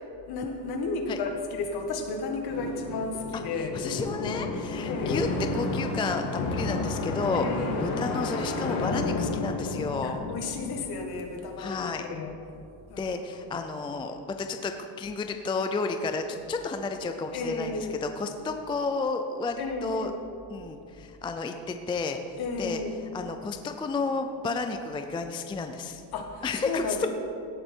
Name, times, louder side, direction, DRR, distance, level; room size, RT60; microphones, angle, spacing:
voice 1, 0.3-3.8 4.8-5.3 7.3-8.0 10.0-12.3 12.9-13.2 13.5-13.6 17.3-18.0 19.6-20.2 22.4-23.0 26.1-27.1, left 3 dB, 50° left, 4 dB, 1.6 m, -33 dB
sound 1, 2.5-11.3, left 3 dB, 85° left, 2.3 m, -31 dB
voice 2, 3.7-5.3 5.5-10.2 11.6-12.1 13.0-20.1 20.5-22.8 23.1-26.0 26.4-27.1, left 4 dB, 10° left, 6 dB, 0.3 m, -32 dB
17.0 x 7.8 x 4.4 m, 2.6 s
cardioid pair, 140°, 46 cm